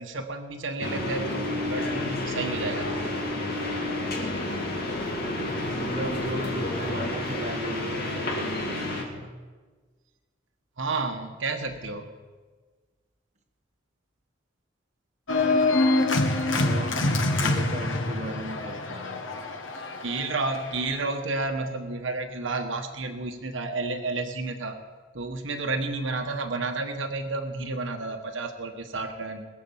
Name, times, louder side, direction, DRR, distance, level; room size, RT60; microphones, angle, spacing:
voice 1, 0.0-3.2 10.8-12.1 20.0-24.8 25.1-29.5, right 3 dB, 75° right, 5 dB, 1.3 m, -31 dB
sound 1, 0.8-9.0, left 1 dB, 55° left, 2.4 m, -30 dB
voice 2, 5.7-9.3 16.5-19.2, right 1 dB, 40° right, 2 dB, 1.4 m, -36 dB
Organ, 15.3-20.9, left 2 dB, 80° left, 1.4 m, -25 dB
21.0 x 7.4 x 7.2 m, 1.4 s
head